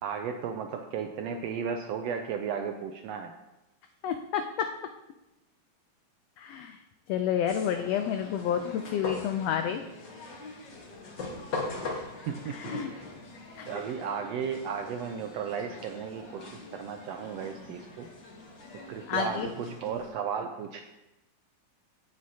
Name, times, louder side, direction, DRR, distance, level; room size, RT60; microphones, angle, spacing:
voice 1, 0.0-3.3 12.3-13.0 13.7-18.1 18.9-20.8, right 7 dB, 80° right, 5 dB, 1.5 m, -34 dB
voice 2, 4.0-4.7 6.4-6.8 7.1-9.8 12.5-12.9 13.6-13.7 19.1-19.5, left 9 dB, 85° left, 7 dB, 1.4 m, -30 dB
sound 1, 7.5-20.1, left 3 dB, 45° left, 1.7 m, -42 dB
16.0 x 6.2 x 2.8 m, 0.97 s
omnidirectional pair, 3.4 m